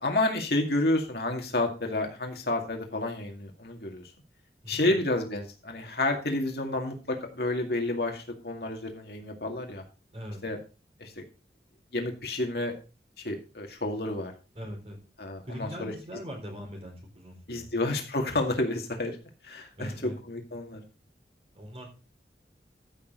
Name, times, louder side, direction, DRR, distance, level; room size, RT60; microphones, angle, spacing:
voice 1, 0.0-4.0 4.7-9.8 10.4-10.6 11.0-11.2 11.9-12.7 13.2-14.3 15.2-15.9 17.5-19.2 19.4-20.8, left 2 dB, 65° left, 3 dB, 2.2 m, -30 dB
voice 2, 4.6-5.0 10.1-10.4 14.5-15.0 15.4-17.7 19.8-20.2 21.5-21.9, equal, 35° right, 1 dB, 4.2 m, -41 dB
14.0 x 6.5 x 3.9 m, 0.32 s
head